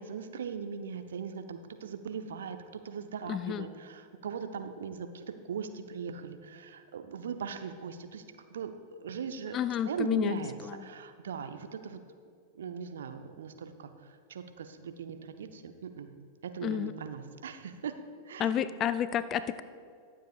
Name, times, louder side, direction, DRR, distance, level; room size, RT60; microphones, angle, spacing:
voice 1, 0.0-2.6 2.8-8.2 8.5-9.6 9.9-10.5 10.8-12.0 12.5-16.1 16.4-17.9 18.3-18.6, right 6 dB, 65° right, 8 dB, 0.7 m, -39 dB
voice 2, 3.3-3.7 9.5-10.9 16.6-16.9 18.4-19.6, left 9 dB, 30° left, 14 dB, 0.4 m, -31 dB
22.5 x 7.5 x 2.4 m, 2.2 s
figure-of-eight pair, 90°, 0 cm